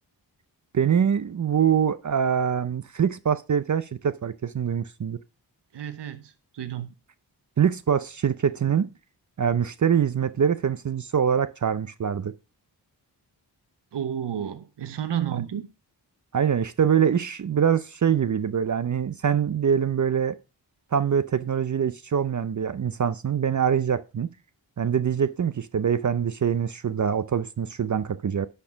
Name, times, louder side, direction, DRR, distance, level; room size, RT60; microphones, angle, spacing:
voice 1, 0.7-5.2 7.6-8.9 9.4-12.3 16.3-20.4 20.9-24.3 24.8-28.5, right 7 dB, 45° right, 0.6 m, -24 dB
voice 2, 5.7-6.9 13.9-15.7, right 9 dB, 75° right, 0.9 m, -31 dB
10.5 x 4.5 x 5.0 m
cardioid pair, 45°, 42 cm